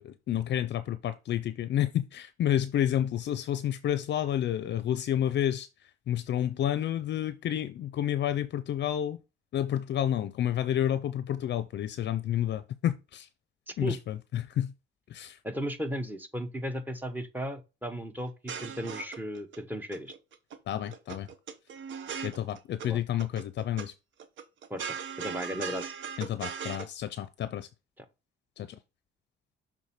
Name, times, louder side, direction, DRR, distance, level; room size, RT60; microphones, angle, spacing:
voice 1, 0.0-5.7 6.1-9.2 9.5-13.3 13.8-14.7 15.1-15.4 20.7-21.3 22.2-23.9 26.2-27.7 28.6-28.8, left 11 dB, 60° left, 0.5 m, -30 dB
voice 2, 13.7-14.0 15.4-20.1 22.8-23.0 24.7-25.9 28.0-28.1, equal, 10° right, 1.0 m, -36 dB
sound 1, 18.3-19.6 19.9-20.6 20.8-22.9 23.2-23.9 24.2-26.9, right 7 dB, 75° right, 0.9 m, -38 dB
6.5 x 3.6 x 4.2 m
cardioid pair, 90°, 20 cm